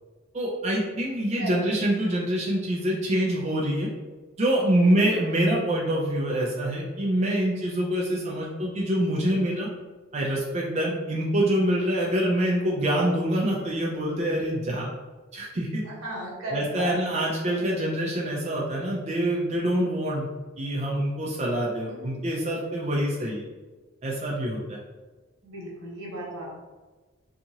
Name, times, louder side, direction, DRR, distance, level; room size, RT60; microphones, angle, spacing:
voice 1, 0.3-3.9 4.4-9.7 10.1-14.9 15.3-15.8 16.5-20.3 20.6-23.4 24.0-24.8, right 1 dB, 30° right, -4 dB, 0.4 m, -25 dB
voice 2, 4.8-5.1 15.8-16.9 21.8-22.2 25.4-26.5, right 1 dB, 90° right, -5 dB, 1.0 m, -36 dB
2.8 x 2.4 x 2.7 m, 1.3 s
head